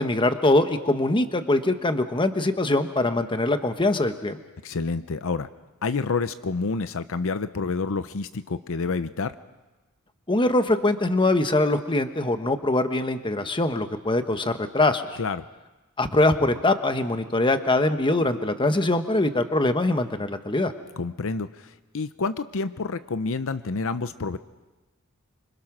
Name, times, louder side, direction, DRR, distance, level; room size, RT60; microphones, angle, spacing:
voice 1, 0.0-4.4 10.3-15.2 16.0-20.7, left 2 dB, 20° left, 8 dB, 1.2 m, -23 dB
voice 2, 4.6-5.5 5.8-9.3 15.2-15.5 21.0-24.4, left 4 dB, 65° left, 12 dB, 0.7 m, -28 dB
26.5 x 25.0 x 6.1 m, 1.2 s
head